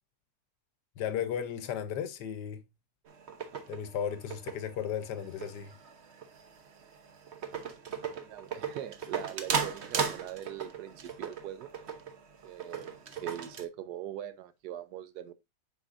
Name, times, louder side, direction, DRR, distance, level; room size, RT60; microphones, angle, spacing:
voice 1, 1.0-2.6 3.7-5.7, left 8 dB, 75° left, 1.3 m, -35 dB
sound 1, 3.1-13.6, right 6 dB, 50° right, 0.9 m, -37 dB
voice 2, 8.1-11.7 12.4-13.0 13.2-15.3, right 11 dB, 75° right, 1.1 m, -42 dB
8.1 x 5.4 x 2.5 m
omnidirectional pair, 1.9 m